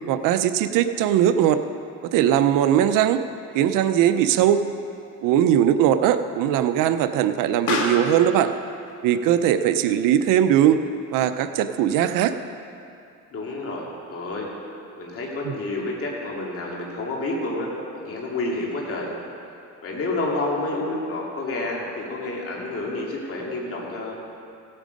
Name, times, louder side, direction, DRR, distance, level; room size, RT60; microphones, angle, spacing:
voice 1, 0.1-1.6 2.1-3.2 3.5-4.6 5.2-8.5 9.0-10.8 11.1-12.3 15.4-15.5, right 10 dB, 85° right, 10 dB, 0.6 m, -20 dB
Explosion, 3.5-12.5, left 3 dB, 75° left, 2.0 m, -36 dB
voice 2, 13.3-14.5 15.0-19.1 19.8-24.1, left 2 dB, 45° left, -3 dB, 2.6 m, -29 dB
16.5 x 8.8 x 5.2 m, 2.6 s
cardioid pair, 105°, 32 cm